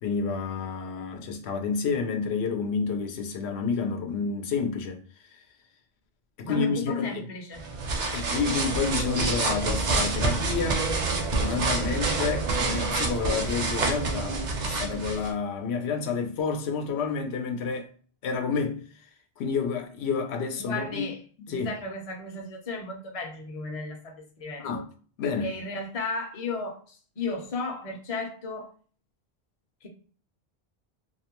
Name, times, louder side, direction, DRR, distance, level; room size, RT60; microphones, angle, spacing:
voice 1, 0.0-5.0 5.3-5.4 6.4-7.2 8.1-10.9 11.4-17.9 18.2-18.8 19.4-21.1 21.5-21.7 24.6-24.9 25.2-25.5, left 5 dB, 85° left, 0.8 m, -29 dB
voice 2, 6.4-7.7 20.6-21.2 21.5-24.8 25.2-28.7 29.8-29.9, left 3 dB, 40° left, 0.6 m, -34 dB
sound 1, 7.5-15.3, right 3 dB, 55° right, 0.6 m, -27 dB
2.3 x 2.1 x 2.9 m
omnidirectional pair, 1.1 m